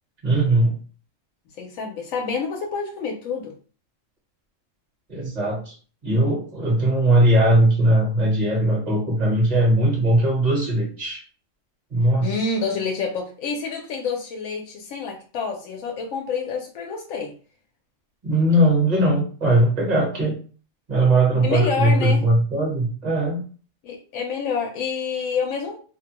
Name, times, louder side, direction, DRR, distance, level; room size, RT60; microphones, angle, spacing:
voice 1, 0.2-0.8 5.1-5.7 6.0-11.2 11.9-12.4 18.2-20.4 20.9-23.4, right 1 dB, 35° right, -2 dB, 1.1 m, -19 dB
voice 2, 1.6-3.5 12.2-17.3 21.4-22.2 23.8-25.8, left 5 dB, 90° left, 1 dB, 1.0 m, -28 dB
2.7 x 2.1 x 2.9 m, 0.39 s
omnidirectional pair, 1.3 m